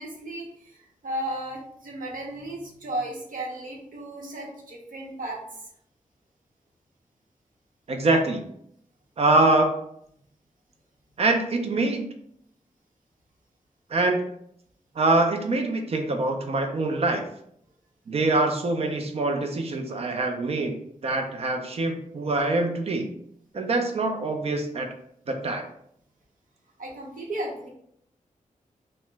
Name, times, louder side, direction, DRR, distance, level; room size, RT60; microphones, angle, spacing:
voice 1, 0.0-5.6 26.8-27.7, right 1 dB, 80° right, -2 dB, 0.9 m, -35 dB
voice 2, 7.9-8.4 9.2-9.7 11.2-12.1 13.9-14.3 15.0-17.2 18.1-20.8 21.0-23.1 23.5-24.9 25.3-25.6, right 2 dB, 45° right, 4 dB, 0.5 m, -24 dB
2.9 x 2.1 x 3.3 m, 0.71 s
wide cardioid pair, 145°, 14 cm